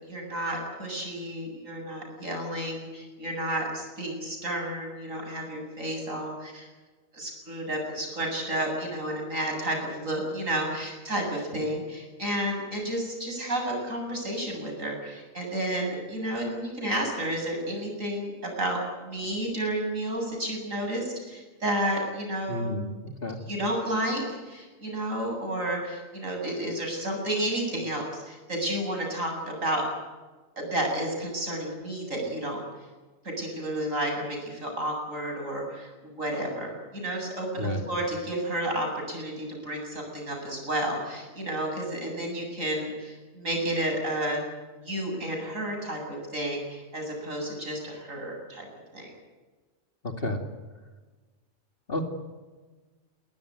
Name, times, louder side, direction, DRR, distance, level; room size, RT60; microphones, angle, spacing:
voice 1, 0.0-6.7 7.1-22.7 23.4-29.8 30.6-32.6 33.2-44.4 44.8-48.7 48.9-49.1, right 1 dB, 85° right, 1 dB, 8.3 m, -31 dB
voice 2, 22.5-22.9 23.2-23.4 37.6-37.8 50.2-50.4 51.9-52.0, left 1 dB, 45° left, 5 dB, 2.9 m, -30 dB
22.0 x 19.5 x 9.6 m, 1.3 s
omnidirectional pair, 1.3 m